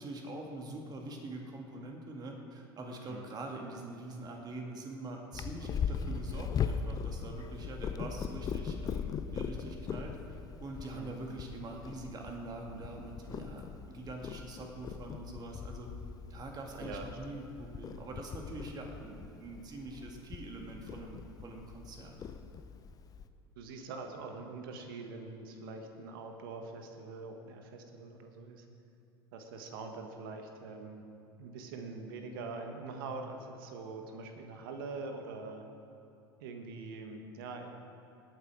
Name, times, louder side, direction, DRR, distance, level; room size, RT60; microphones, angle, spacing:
voice 1, 0.0-10.2 10.6-15.9 16.3-22.2, right 2 dB, 30° right, 1 dB, 2.2 m, -44 dB
Purr, 5.3-23.3, left 6 dB, 30° left, 0.7 m, -40 dB
voice 2, 23.6-28.6 29.3-31.0 31.4-35.6 36.4-37.7, right 3 dB, 60° right, 4 dB, 1.6 m, -44 dB
19.5 x 9.0 x 4.9 m, 2.7 s
figure-of-eight pair, 75°, 13 cm